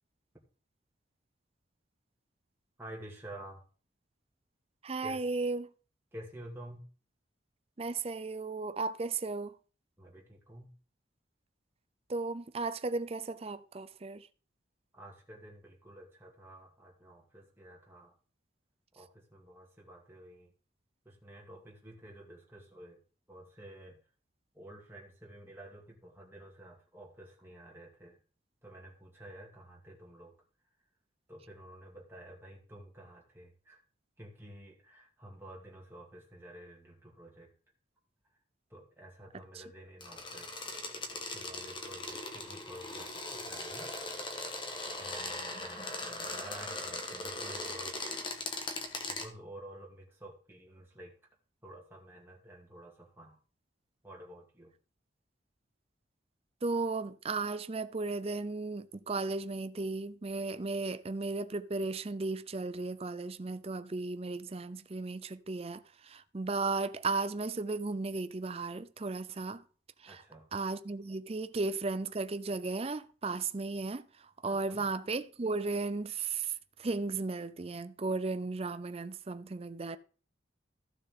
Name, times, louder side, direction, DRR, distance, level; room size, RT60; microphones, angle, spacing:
voice 1, 2.8-3.6 5.0-5.2 6.1-6.8 10.0-10.7 14.9-18.1 18.9-20.5 21.1-23.0 23.3-24.0 24.5-28.2 28.6-30.3 31.3-33.8 34.2-37.5 38.7-40.6 41.1-43.9 45.0-48.2 49.1-51.1 51.6-53.4 54.0-54.7 70.1-70.5 74.5-74.9, right 1 dB, 10° right, 2.1 m, -51 dB
voice 2, 4.8-5.7 7.8-9.5 12.1-14.2 56.6-69.6 70.0-70.2 70.5-74.0 74.4-76.5 76.8-80.0, right 3 dB, 30° right, 0.5 m, -35 dB
sound 1, 40.0-49.3, left 2 dB, 25° left, 1.4 m, -39 dB
14.5 x 6.7 x 3.8 m
head